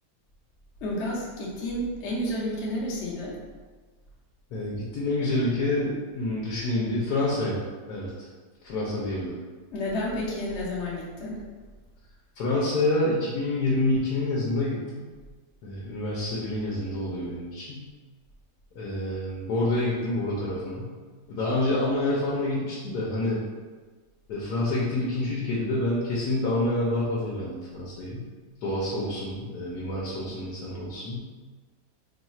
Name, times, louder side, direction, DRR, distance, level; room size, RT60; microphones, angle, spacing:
voice 1, 0.8-3.4 9.7-11.4, left 1 dB, 55° left, -5 dB, 0.9 m, -31 dB
voice 2, 4.5-8.3 8.6-9.3 12.4-15.0 15.6-17.9 18.7-20.9 21.3-23.4 24.3-28.3 28.6-31.2, left 1 dB, 70° left, -5 dB, 1.2 m, -28 dB
3.1 x 2.3 x 4.1 m, 1.4 s
omnidirectional pair, 1.8 m